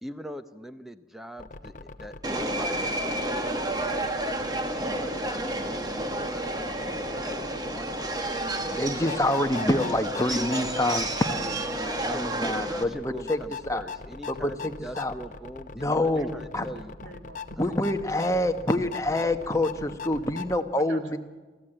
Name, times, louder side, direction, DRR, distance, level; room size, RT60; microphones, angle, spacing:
voice 1, 0.0-8.4 10.3-11.2 12.1-16.9, equal, ahead, 9 dB, 0.8 m, -42 dB
sound 1, 1.4-20.6, left 4 dB, 45° left, 0.9 m, -42 dB
Subway metro underground, 2.2-12.8, right 1 dB, 20° right, 1.4 m, -30 dB
voice 2, 8.8-13.4 13.7-13.8 14.3-15.1 15.7-16.6 17.6-21.2, left 1 dB, 15° left, 6 dB, 1.1 m, -27 dB
voice 3, 16.2-18.5 20.7-21.2, right 1 dB, 90° right, 5 dB, 2.1 m, -45 dB
26.5 x 14.5 x 9.0 m, 1.3 s
head